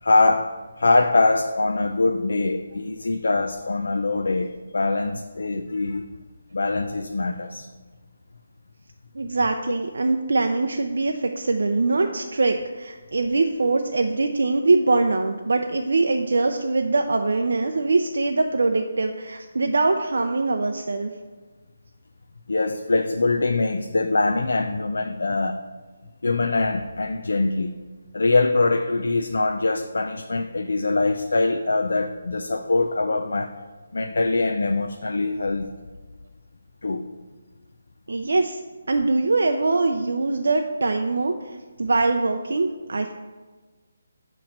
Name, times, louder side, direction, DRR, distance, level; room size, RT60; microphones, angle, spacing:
voice 1, 0.0-6.0 6.5-7.7 22.5-25.6 26.2-27.7 28.1-33.5 33.9-35.7 36.8-37.1, left 3 dB, 85° left, 5 dB, 0.3 m, -23 dB
voice 2, 9.1-21.1 38.1-38.6 38.9-43.1, right 3 dB, 75° right, 4 dB, 0.4 m, -23 dB
7.1 x 3.0 x 5.2 m, 1.4 s
hypercardioid pair, 175°, 0 cm